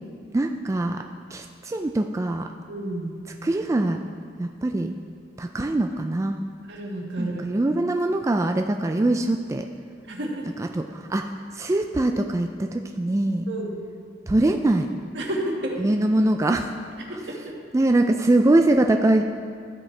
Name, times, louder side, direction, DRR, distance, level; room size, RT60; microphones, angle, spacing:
voice 1, 0.3-1.0 1.3-2.5 3.4-4.0 4.4-4.9 5.4-6.4 7.2-9.7 10.4-13.5 14.3-14.9 15.8-16.8 17.7-19.2, right 2 dB, 15° right, 4 dB, 0.3 m, -23 dB
voice 2, 2.7-3.1 6.7-7.3 10.1-10.5 13.5-13.7 15.1-15.8 17.1-17.4, right 1 dB, 75° right, -1 dB, 1.6 m, -30 dB
13.5 x 7.6 x 3.3 m, 2.1 s
head